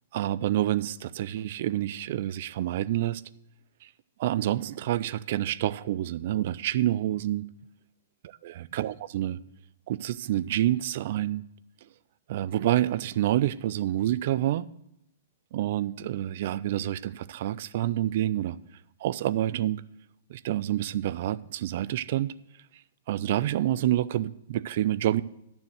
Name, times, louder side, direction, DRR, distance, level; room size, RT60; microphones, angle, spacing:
voice 1, 0.1-3.2 3.8-3.9 4.2-7.5 8.4-9.4 9.9-11.4 12.3-14.7 15.5-18.6 19.0-19.8 20.3-22.3 23.1-25.2, right 13 dB, 55° right, 0.4 m, -28 dB
9.2 x 6.9 x 7.8 m
hypercardioid pair, 130°, 0 cm